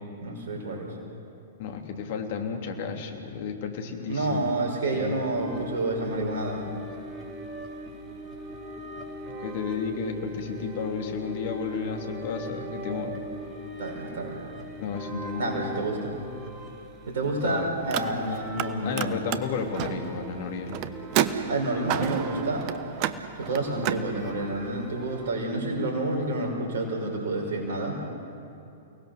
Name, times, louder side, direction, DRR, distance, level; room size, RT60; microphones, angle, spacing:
voice 1, 0.2-0.9 4.1-6.6 13.8-14.4 15.4-16.1 17.1-19.2 21.5-22.7 23.4-28.0, right 2 dB, 55° right, 2 dB, 5.2 m, -29 dB
voice 2, 1.6-4.5 4.9-5.3 9.4-13.2 14.8-15.5 17.4-17.7 18.8-20.8 22.1-22.2, left 6 dB, 45° left, 3 dB, 2.9 m, -32 dB
sound 1, 5.3-25.3, right 1 dB, 15° right, 5.0 m, -40 dB
Car, 17.8-18.7 18.9-24.0, right 11 dB, 35° right, 0.9 m, -31 dB
29.5 x 18.5 x 6.6 m, 2.7 s
figure-of-eight pair, 105°, 0 cm